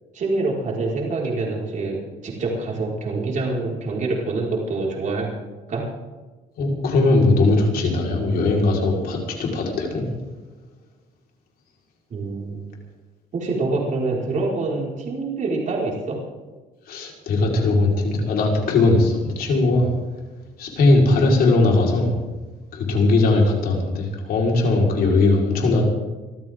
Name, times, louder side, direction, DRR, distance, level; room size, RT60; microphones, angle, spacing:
voice 1, 0.1-5.3 5.7-5.8 12.1-12.6 13.3-16.2, right 3 dB, 45° right, -3 dB, 5.5 m, -25 dB
voice 2, 6.6-10.1 16.9-19.9 20.6-22.1 22.7-25.8, left 2 dB, 65° left, -1 dB, 5.0 m, -19 dB
25.5 x 14.0 x 3.9 m, 1.2 s
cardioid pair, 110°, 17 cm